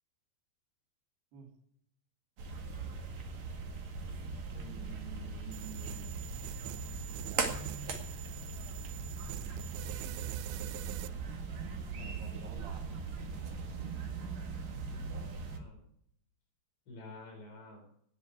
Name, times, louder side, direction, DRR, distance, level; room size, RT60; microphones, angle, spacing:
sound 1, 2.4-15.6, right 4 dB, 50° right, 2.6 m, -40 dB
voice 1, 4.5-6.3 7.0-8.0 8.7-10.3 11.9-12.9 13.4-14.1, right 5 dB, 70° right, -1 dB, 5.1 m, -51 dB
sound 2, 5.5-11.1, right 15 dB, 90° right, 2.9 m, -46 dB
voice 2, 14.9-15.9 16.9-17.9, left 2 dB, 80° left, 1 dB, 6.9 m, -51 dB
19.0 x 6.8 x 8.2 m, 0.70 s
omnidirectional pair, 5.0 m